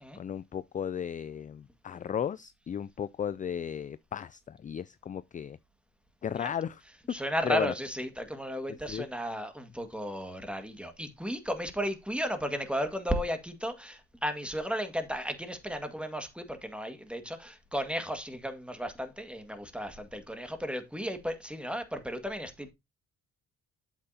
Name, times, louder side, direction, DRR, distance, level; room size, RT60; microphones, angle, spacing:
voice 1, 0.2-5.6 6.2-6.8 7.2-7.7 8.9-9.1, left 8 dB, 25° left, 0.3 m, -35 dB
voice 2, 7.1-22.7, equal, 5° right, 1.8 m, -34 dB
8.1 x 7.7 x 2.8 m
cardioid pair, 90°, 30 cm